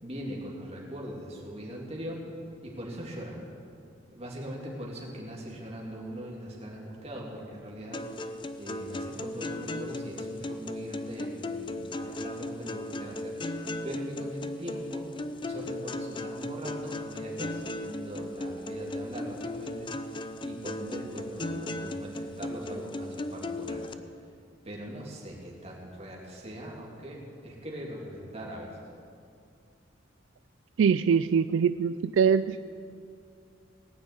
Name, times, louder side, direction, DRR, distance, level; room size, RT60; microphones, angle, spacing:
voice 1, 0.0-2.2 2.6-3.4 4.1-8.1 8.6-15.1 15.4-23.9 24.6-28.8, equal, 35° right, -2 dB, 2.7 m, -41 dB
sound 1, 7.9-23.9, left 1 dB, 25° left, 0.5 m, -36 dB
voice 2, 30.8-32.6, right 6 dB, 75° right, 12 dB, 0.3 m, -23 dB
18.5 x 6.4 x 9.5 m, 2.4 s
head